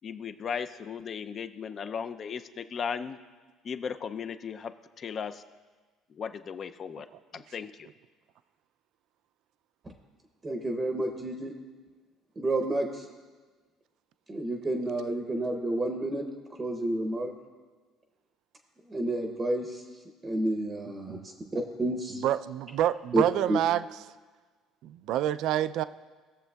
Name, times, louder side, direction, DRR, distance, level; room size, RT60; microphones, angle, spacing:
voice 1, 0.0-3.2 3.6-5.4 6.1-7.1 7.3-7.9, left 6 dB, 30° left, 10 dB, 0.4 m, -36 dB
voice 2, 10.4-11.5 12.4-13.1 14.3-16.2 16.6-17.3 18.9-19.8 20.2-22.2 23.1-23.2 23.5-23.6, right 1 dB, 15° right, 3 dB, 0.7 m, -30 dB
voice 3, 22.2-23.8 24.8-25.8, right 12 dB, 60° right, 13 dB, 0.3 m, -27 dB
19.5 x 7.3 x 2.3 m, 1.4 s
cardioid pair, 165°, 0 cm